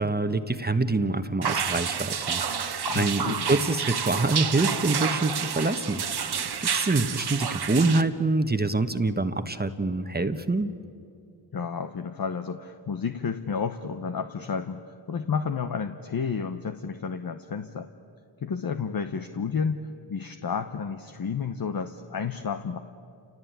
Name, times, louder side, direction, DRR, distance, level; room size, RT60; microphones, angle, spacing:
voice 1, 0.0-6.0 6.6-10.7, right 2 dB, 20° right, 9 dB, 1.3 m, -26 dB
sound 1, 1.4-8.0, right 7 dB, 60° right, 1.4 m, -29 dB
voice 2, 2.9-3.6 11.5-14.8 15.1-17.9 18.4-22.8, left 6 dB, 50° left, 7 dB, 1.2 m, -31 dB
30.0 x 18.0 x 9.2 m, 2.5 s
cardioid pair, 55°, 45 cm